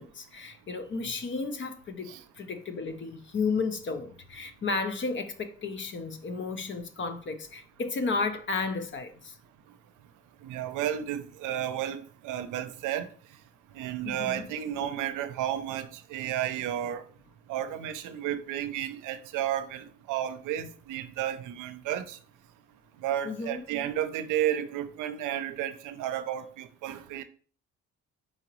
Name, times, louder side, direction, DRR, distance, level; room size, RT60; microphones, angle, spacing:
voice 1, 0.0-9.4 14.0-14.5 23.2-23.6, left 4 dB, 40° left, 0.7 m, -33 dB
voice 2, 10.4-13.1 13.7-17.0 17.5-22.2 23.0-27.2, right 11 dB, 85° right, 0.6 m, -32 dB
4.1 x 3.8 x 3.0 m
cardioid pair, 90°, 30 cm